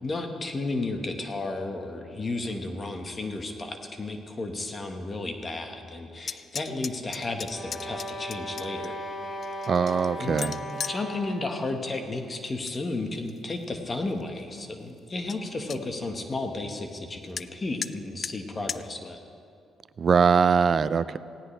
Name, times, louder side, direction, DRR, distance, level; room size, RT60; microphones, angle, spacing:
voice 1, 0.0-9.0 10.1-10.6 10.9-19.2, left 2 dB, 30° left, 5 dB, 1.4 m, -33 dB
sound 1, 6.2-8.9 9.4-11.0 12.3-12.8 13.2-13.6 14.2-14.3 14.6-14.7 15.0-15.1 15.3-15.8 17.4-17.5 17.8-17.9 18.2-18.3 18.7-18.8, left 6 dB, 50° left, 0.4 m, -36 dB
sound 2, 7.4-11.6, equal, 10° left, 1.8 m, -37 dB
voice 2, 9.7-10.5 20.0-21.2, right 6 dB, 45° right, 15 dB, 0.4 m, -22 dB
18.5 x 16.5 x 3.3 m, 2.5 s
cardioid pair, 90°, 0 cm